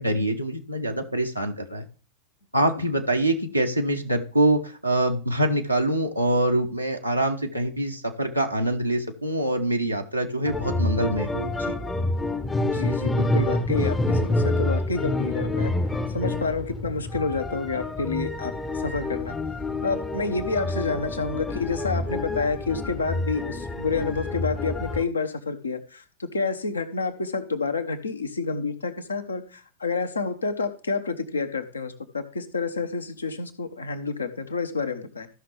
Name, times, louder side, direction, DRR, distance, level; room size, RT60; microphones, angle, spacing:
voice 1, 0.0-1.9 2.5-11.7, right 1 dB, 90° right, 7 dB, 0.9 m, -25 dB
sound 1, 10.4-25.0, left 2 dB, 10° left, 0.7 m, -28 dB
voice 2, 12.6-15.7 16.1-19.4 19.8-35.3, left 4 dB, 75° left, 8 dB, 0.9 m, -29 dB
14.0 x 5.8 x 3.4 m, 0.38 s
figure-of-eight pair, 90°, 0 cm